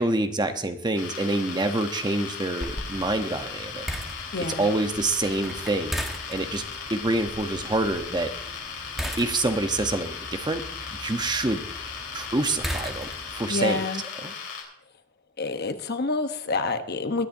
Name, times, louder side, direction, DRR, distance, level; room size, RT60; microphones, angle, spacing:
voice 1, 0.0-3.9 4.6-6.0 6.3-6.6 6.9-8.3 9.2-10.6 11.0-11.6 12.1-13.8 14.2-14.3, right 2 dB, 20° right, 7 dB, 0.9 m, -26 dB
sound 1, 1.0-14.6, left 6 dB, 70° left, 3.8 m, -37 dB
sound 2, 2.6-13.5, equal, ahead, 1.3 m, -38 dB
voice 2, 4.3-4.7 13.5-14.0 15.4-17.3, left 3 dB, 55° left, 8 dB, 0.9 m, -27 dB
22.0 x 10.0 x 2.7 m, 0.73 s
head